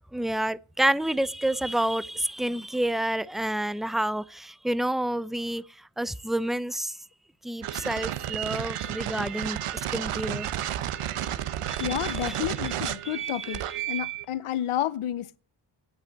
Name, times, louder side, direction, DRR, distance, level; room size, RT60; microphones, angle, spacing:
voice 1, 0.1-5.6 6.0-6.9 7.4-9.6 9.9-10.5 11.7-12.3 13.0-13.6, right 1 dB, ahead, 0.5 m, -29 dB
sound 1, 7.6-14.3, right 11 dB, 90° right, 0.9 m, -32 dB
voice 2, 11.8-13.6 13.9-15.4, left 12 dB, 85° left, 0.8 m, -30 dB
9.2 x 8.3 x 9.1 m
cardioid pair, 65°, 49 cm